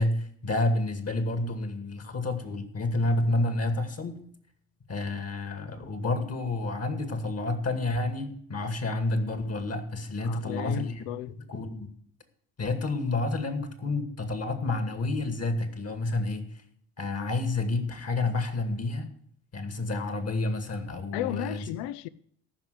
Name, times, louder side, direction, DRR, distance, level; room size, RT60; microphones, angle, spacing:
voice 1, 0.0-4.2 4.9-11.1 11.4-11.9 12.6-16.5 17.0-19.1 19.5-21.6, left 2 dB, 35° left, 2.2 m, -29 dB
voice 2, 10.2-11.4 21.1-22.1, left 14 dB, 65° left, 0.7 m, -34 dB
14.0 x 5.8 x 8.0 m
hypercardioid pair, 55°, 44 cm